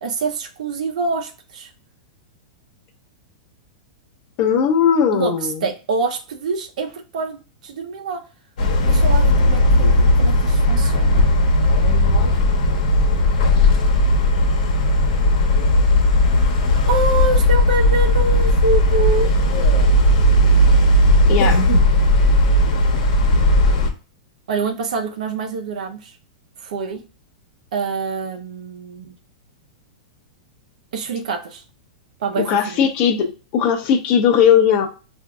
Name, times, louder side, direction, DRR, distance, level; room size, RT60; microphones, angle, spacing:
voice 1, 0.0-1.7 5.1-5.3 5.6-8.2 8.9-11.2 16.7-19.3 24.5-26.2 26.6-27.0 27.7-29.1 30.9-31.6 32.2-32.9, right 3 dB, 70° right, 4 dB, 0.8 m, -25 dB
voice 2, 4.4-5.7 21.3-21.6 32.4-34.9, left 8 dB, 35° left, 6 dB, 0.6 m, -18 dB
sound 1, 8.6-23.9, left 1 dB, 70° left, 1.0 m, -16 dB
4.9 x 2.6 x 2.2 m, 0.33 s
supercardioid pair, 160°, 4 cm